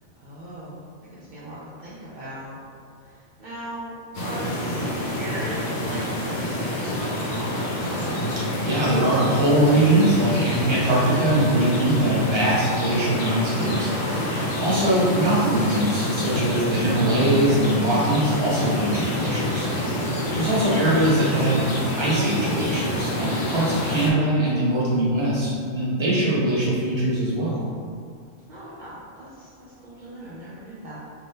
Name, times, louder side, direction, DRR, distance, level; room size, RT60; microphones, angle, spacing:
voice 1, 0.2-2.6 3.0-7.8 20.3-20.4 28.5-31.0, right 1 dB, 65° right, -9 dB, 0.4 m, -38 dB
sound 1, 4.1-24.1, left 1 dB, 65° left, 0.8 m, -27 dB
voice 2, 8.4-13.9 14.6-19.7 20.3-21.7 22.0-27.6, right 1 dB, 25° right, -8 dB, 0.7 m, -22 dB
2.6 x 2.3 x 3.5 m, 2.2 s
omnidirectional pair, 1.3 m